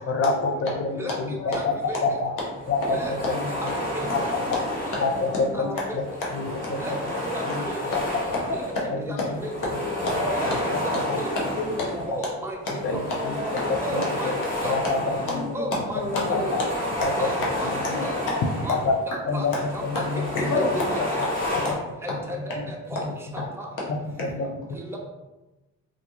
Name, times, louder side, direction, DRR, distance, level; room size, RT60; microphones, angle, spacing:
voice 1, 0.1-1.7 2.0-2.3 2.7-3.0 3.4-3.5 4.1-4.2 5.0-5.1 5.4-6.0 6.3-6.8 7.5-7.6 8.9-9.0 11.1-11.2 12.8-13.4 13.9-14.0 14.7-15.5 16.3-16.4 17.0-17.3 17.9-18.0 18.7-18.9 19.3-19.5 19.8-20.5 21.7-21.8 23.0-23.1 23.9-24.6, left 4 dB, 50° left, 4 dB, 0.5 m, -27 dB
voice 2, 0.9-2.2 2.8-3.2 3.5-4.3 4.8-5.0 5.5-6.2 6.7-7.9 8.5-8.6 9.1-9.7 10.2-10.5 10.8-11.5 12.1-12.6 12.9-13.0 13.8-14.4 14.6-14.8 15.5-16.5 17.2-17.7 18.0-18.2 18.6-19.5 19.7-20.0 20.4-21.3 22.0-23.9 24.7-25.0, right 1 dB, 10° right, -1 dB, 0.6 m, -35 dB
sound 1, 1.8-2.0 2.5-5.6 5.9-8.9 9.3-12.2 12.6-19.0 19.3-21.7, left 1 dB, 30° left, 1.2 m, -31 dB
voice 3, 5.3-5.9 6.3-6.6 7.8-8.0 8.3-9.0 9.6-10.3 11.1-12.1 12.7-13.7 15.3-15.5 15.9-16.6 16.9-17.5 18.7-18.8 19.5-19.6 19.9-20.0 20.3-21.0 21.6-21.8 24.4-24.5, left 2 dB, 90° left, -4 dB, 0.9 m, -30 dB
2.5 x 2.3 x 2.8 m, 1.1 s
cardioid pair, 90°, 30 cm